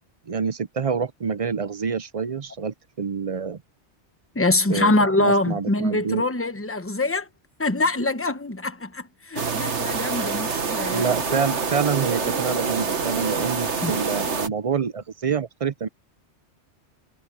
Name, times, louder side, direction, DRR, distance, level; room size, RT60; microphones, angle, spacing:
voice 1, 0.3-3.6 4.7-6.3 10.9-15.9, right 6 dB, 40° right, 0.5 m, -27 dB
voice 2, 4.3-7.3 7.6-11.1 13.8-14.0, left 2 dB, 10° left, 1.0 m, -24 dB
sound 1, 9.4-14.5, right 5 dB, 80° right, 1.9 m, -26 dB
omnidirectional pair, 1.2 m